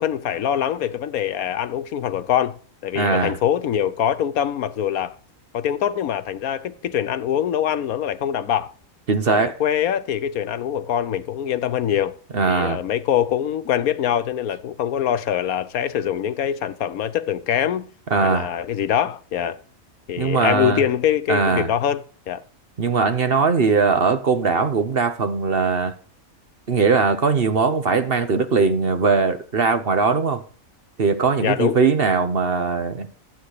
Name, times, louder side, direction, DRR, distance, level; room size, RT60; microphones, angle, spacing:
voice 1, 0.0-5.1 5.5-8.7 9.3-12.1 12.5-17.9 18.2-19.6 20.1-22.4 31.4-31.8, left 9 dB, 80° left, 1.3 m, -24 dB
voice 2, 2.9-3.4 9.1-9.5 12.3-12.8 18.1-18.5 20.2-20.9 21.3-21.7 22.8-25.9 26.7-30.4 31.0-33.1, right 4 dB, 45° right, 1.1 m, -20 dB
14.5 x 8.3 x 4.9 m
omnidirectional pair, 1.5 m